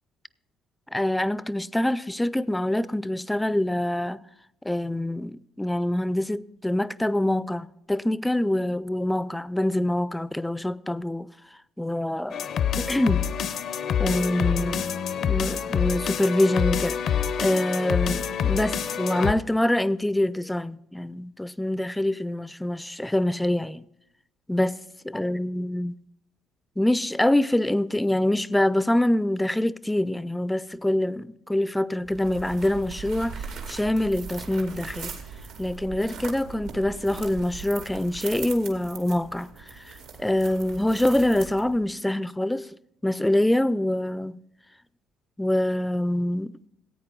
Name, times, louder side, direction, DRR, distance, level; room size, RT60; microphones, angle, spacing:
voice 1, 0.9-4.2 4.6-11.3 11.8-12.5 12.8-13.2 14.0-14.9 15.2-17.0 17.4-23.8 24.5-24.8 25.0-26.0 26.8-35.1 35.6-39.5 39.8-42.7 43.0-44.4 45.4-46.5, left 1 dB, 10° left, 0.4 m, -25 dB
sound 1, 12.3-19.3, left 8 dB, 65° left, 0.6 m, -26 dB
sound 2, 32.0-41.9, right 5 dB, 85° right, 1.8 m, -40 dB
15.0 x 8.6 x 3.8 m
supercardioid pair, 70°, 0 cm